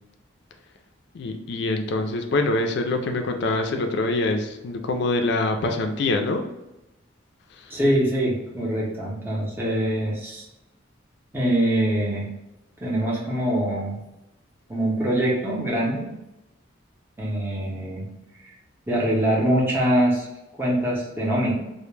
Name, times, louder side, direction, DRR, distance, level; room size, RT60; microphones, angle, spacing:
voice 1, 1.1-6.4 7.6-7.7, left 2 dB, 60° left, 4 dB, 0.3 m, -25 dB
voice 2, 7.7-10.5 11.3-12.3 12.8-14.0 14.7-16.1 17.2-18.1 18.4-18.5 18.9-20.3 20.6-21.5, right 1 dB, 10° right, -5 dB, 0.6 m, -23 dB
2.1 x 2.1 x 3.1 m, 0.95 s
head